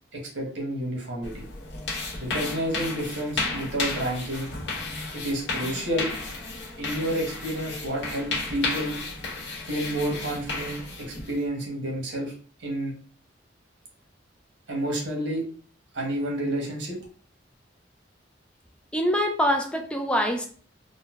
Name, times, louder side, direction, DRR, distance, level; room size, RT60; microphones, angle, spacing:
voice 1, 0.1-1.4 2.2-4.5 5.1-6.1 6.8-9.0 9.6-12.3 12.6-12.9 14.7-15.4 15.9-17.0, right 1 dB, 80° right, 0 dB, 1.0 m, -30 dB
sound 1, 1.2-11.4, left 3 dB, 80° left, 1.1 m, -33 dB
voice 2, 18.9-20.5, equal, 5° left, 4 dB, 0.3 m, -24 dB
3.8 x 2.0 x 2.3 m, 0.43 s
head